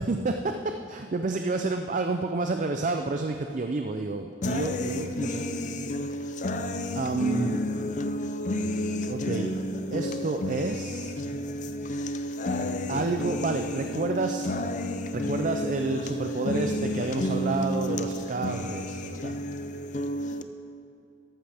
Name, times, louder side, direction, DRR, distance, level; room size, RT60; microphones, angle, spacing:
voice 1, 0.0-5.8 7.0-7.6 9.1-9.5 9.9-11.2 12.9-14.5 15.1-19.4, right 3 dB, 40° right, 5 dB, 0.4 m, -29 dB
sound 1, 4.4-20.4, left 1 dB, 40° left, 0.5 m, -31 dB
13.5 x 13.0 x 3.5 m, 2.6 s
head